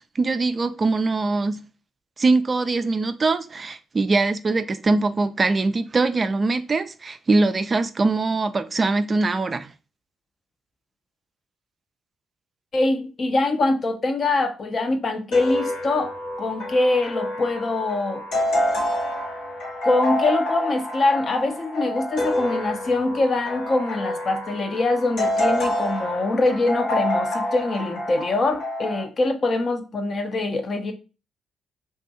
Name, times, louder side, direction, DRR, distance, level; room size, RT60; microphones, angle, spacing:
voice 1, 0.2-1.6 2.2-9.7, right 3 dB, 40° right, 0.3 m, -22 dB
voice 2, 12.7-16.1 16.4-18.2 19.8-30.9, left 2 dB, 45° left, 0.7 m, -23 dB
sound 1, 15.3-29.0, left 1 dB, 70° left, 1.1 m, -27 dB
2.6 x 2.4 x 3.9 m
hypercardioid pair, 45°, 0 cm